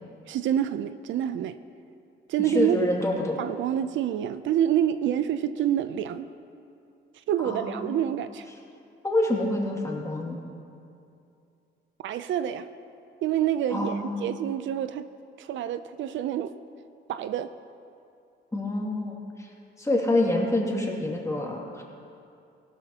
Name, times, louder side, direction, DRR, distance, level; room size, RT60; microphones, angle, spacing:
voice 1, 0.3-1.6 2.3-2.8 3.4-6.3 7.3-8.5 12.0-12.7 13.2-13.9 14.2-15.1 15.4-16.5 17.1-17.5, right 10 dB, 70° right, 12 dB, 0.5 m, -27 dB
voice 2, 2.4-3.4 7.4-8.1 9.0-10.4 13.7-14.4 18.5-21.8, left 2 dB, 15° left, -2 dB, 2.3 m, -27 dB
17.0 x 12.0 x 2.9 m, 2.6 s
cardioid pair, 90°, 20 cm